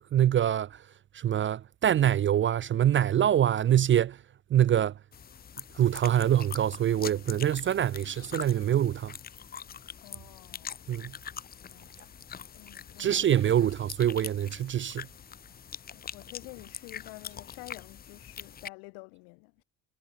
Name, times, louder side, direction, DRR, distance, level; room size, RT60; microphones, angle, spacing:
voice 1, 0.1-0.8 1.1-4.2 4.5-4.9 5.8-9.1 10.9-11.1 13.0-15.1, right 10 dB, 30° right, 0.5 m, -25 dB
sound 1, 5.1-18.7, left 8 dB, 25° left, 0.6 m, -44 dB
voice 2, 10.0-11.0 11.7-11.9 12.5-13.7 14.9-15.0 15.9-19.6, left 40 dB or more, 75° left, 4.1 m, -49 dB
hypercardioid pair, 65°, 40 cm